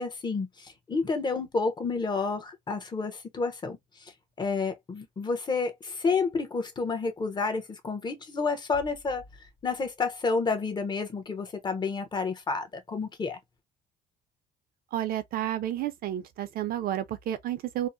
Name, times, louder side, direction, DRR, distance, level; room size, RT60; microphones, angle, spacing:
voice 1, 0.0-4.1 4.4-9.2 9.6-13.4, left 4 dB, 25° left, 0.8 m, -30 dB
voice 2, 14.9-17.9, right 12 dB, 60° right, 0.6 m, -31 dB
2.8 x 2.1 x 2.5 m
cardioid pair, 110°, 17 cm